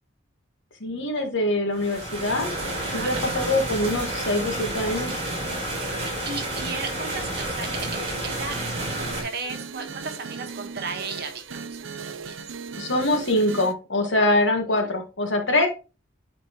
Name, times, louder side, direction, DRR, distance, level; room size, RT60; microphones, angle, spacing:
voice 1, 0.8-2.5 2.9-5.1 12.8-15.7, left 1 dB, 70° left, 4 dB, 1.7 m, -24 dB
sound 1, 1.7-9.2, right 1 dB, 30° right, 3.7 m, -30 dB
voice 2, 2.7-3.5 5.5-12.4 14.0-14.3 14.8-14.9, right 4 dB, 50° right, 5 dB, 1.4 m, -36 dB
sound 2, 7.8-13.7, right 5 dB, 80° right, 0.7 m, -37 dB
9.7 x 4.2 x 3.0 m, 0.31 s
head